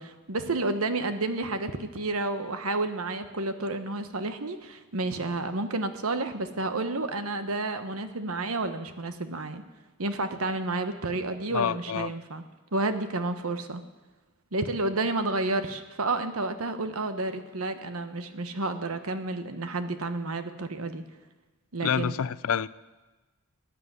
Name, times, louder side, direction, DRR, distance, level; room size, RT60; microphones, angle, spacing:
voice 1, 0.0-9.6 10.0-12.4 12.7-13.8 14.5-21.0 21.7-22.2, right 2 dB, 85° right, 9 dB, 1.2 m, -30 dB
voice 2, 11.5-12.1 21.8-22.7, left 7 dB, 85° left, 18 dB, 0.5 m, -27 dB
16.5 x 9.9 x 8.1 m, 1.2 s
head